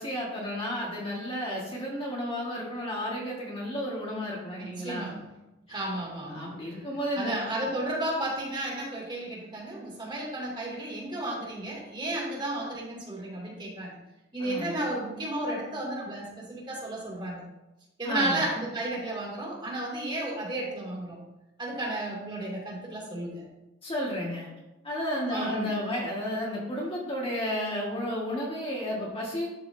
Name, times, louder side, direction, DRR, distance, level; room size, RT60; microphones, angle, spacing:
voice 1, 0.0-5.1 5.7-5.8 6.3-7.3 14.4-14.8 18.0-18.5 23.8-24.5 24.8-29.5, equal, 30° left, -4 dB, 1.7 m, -32 dB
voice 2, 4.6-5.2 5.7-6.8 7.2-14.0 14.3-17.4 18.0-21.2 21.6-23.5 25.3-25.7, right 1 dB, 25° right, -4 dB, 2.6 m, -33 dB
12.5 x 4.9 x 2.7 m, 0.98 s
head